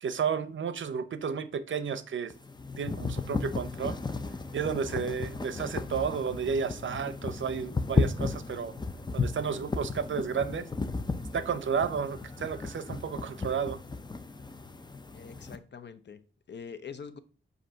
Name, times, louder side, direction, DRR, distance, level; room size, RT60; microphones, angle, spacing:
voice 1, 0.0-2.3 2.8-4.0 4.5-8.7 9.1-10.7 11.3-13.8, right 6 dB, 70° right, 0.6 m, -32 dB
sound 1, 2.3-15.6, left 3 dB, 20° left, 0.5 m, -34 dB
voice 2, 15.1-17.2, left 6 dB, 60° left, 0.7 m, -44 dB
7.7 x 2.7 x 5.6 m
wide cardioid pair, 100°, 21 cm